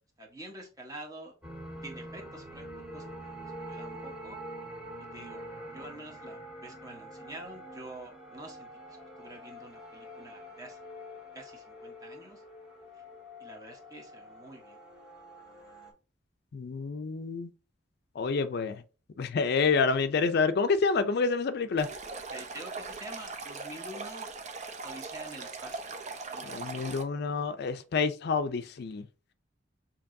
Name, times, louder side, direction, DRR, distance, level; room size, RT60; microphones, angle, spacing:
voice 1, 0.2-1.3 1.8-2.6 2.9-4.4 5.1-10.8 11.3-12.4 12.9-13.0 13.4-14.8 22.3-24.3 24.8-26.8, right 1 dB, 20° right, 1.1 m, -47 dB
sound 1, 1.4-15.9, equal, 5° right, 1.5 m, -45 dB
voice 2, 16.5-17.5 18.2-18.8 19.2-21.9 26.4-29.0, left 4 dB, 60° left, 0.4 m, -28 dB
Stream, 21.8-27.0, right 4 dB, 40° right, 0.6 m, -40 dB
6.9 x 2.9 x 2.6 m
head